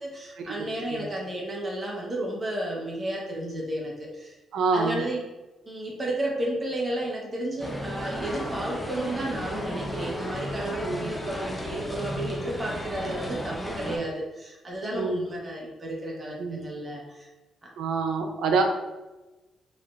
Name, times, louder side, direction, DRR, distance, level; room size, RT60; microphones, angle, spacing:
voice 1, 0.0-4.3 4.7-5.2 5.7-17.3, right 1 dB, 20° right, -3 dB, 0.9 m, -32 dB
voice 2, 4.5-5.0 10.8-11.1 14.9-15.2 16.4-16.6 17.8-18.6, right 4 dB, 85° right, 4 dB, 0.5 m, -26 dB
sound 1, 7.6-14.0, equal, 10° left, 0.5 m, -34 dB
4.2 x 3.0 x 2.5 m, 1.1 s
cardioid pair, 160°, 0 cm